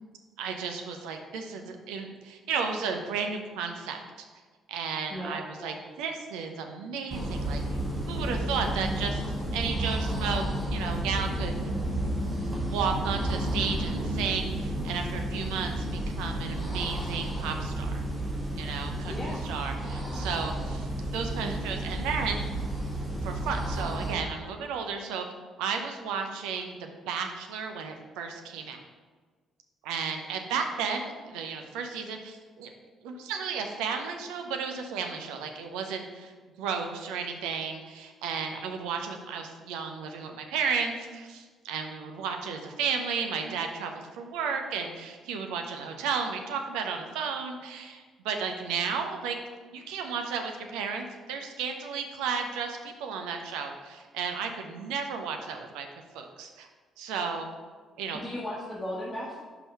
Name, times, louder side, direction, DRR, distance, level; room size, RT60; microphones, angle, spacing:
voice 1, 0.4-4.0 4.7-7.6 8.1-9.2 9.5-11.5 12.6-18.0 18.6-20.9 21.1-22.4 23.2-25.2 25.6-28.8 29.8-32.7 33.0-36.3 36.6-49.4 49.7-55.9 56.1-56.7 57.0-57.5 58.0-58.2, right 6 dB, 70° right, 4 dB, 0.7 m, -33 dB
voice 2, 5.1-5.7 19.0-19.5 58.1-59.4, left 1 dB, 15° left, -6 dB, 1.4 m, -36 dB
sound 1, 7.1-24.1, right 1 dB, 25° right, 1.8 m, -31 dB
5.5 x 4.7 x 5.4 m, 1.5 s
figure-of-eight pair, 45°, 0 cm